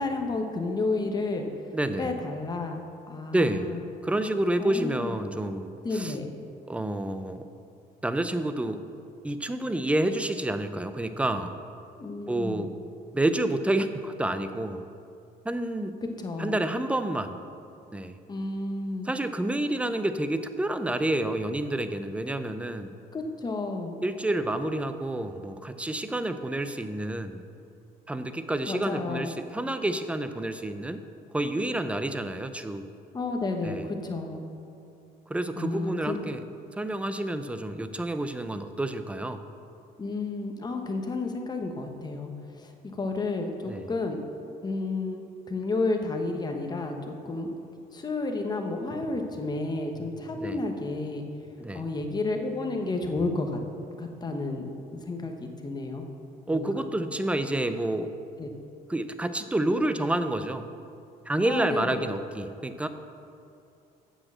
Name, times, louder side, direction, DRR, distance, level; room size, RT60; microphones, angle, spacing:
voice 1, 0.0-1.5 2.0-3.8 4.6-5.2 5.8-6.3 12.0-12.7 16.0-16.6 18.3-19.1 23.1-24.0 28.7-29.3 33.1-34.4 35.6-36.2 40.0-44.2 44.6-46.9 47.2-47.5 47.9-51.4 51.7-53.6 54.0-56.0 56.5-56.9 58.4-58.5 61.4-62.1, left 3 dB, 25° left, 3 dB, 1.1 m, -31 dB
voice 2, 1.7-2.2 3.3-3.7 4.0-6.1 6.7-7.5 8.0-8.8 9.2-11.6 12.3-12.7 13.1-14.8 15.4-16.0 16.4-17.4 17.9-18.2 19.0-22.9 24.0-27.4 28.1-31.0 31.3-32.9 33.6-33.9 35.3-36.4 36.8-39.4 43.7-43.9 50.4-50.6 51.6-51.8 56.5-58.1 58.9-60.7 61.3-62.9, right 1 dB, 5° right, 10 dB, 0.5 m, -29 dB
7.9 x 6.3 x 7.3 m, 2.5 s
cardioid pair, 110°, 17 cm